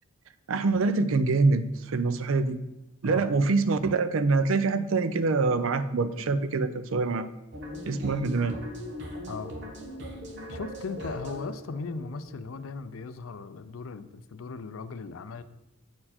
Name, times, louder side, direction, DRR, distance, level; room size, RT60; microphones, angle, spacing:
voice 1, 0.5-2.6 3.0-7.3 7.9-8.6, right 3 dB, 80° right, 12 dB, 0.5 m, -25 dB
sound 1, 7.5-13.3, left 1 dB, 55° right, 1.1 m, -40 dB
voice 2, 10.5-15.4, left 4 dB, 80° left, 12 dB, 0.5 m, -38 dB
8.7 x 4.5 x 4.2 m, 0.94 s
head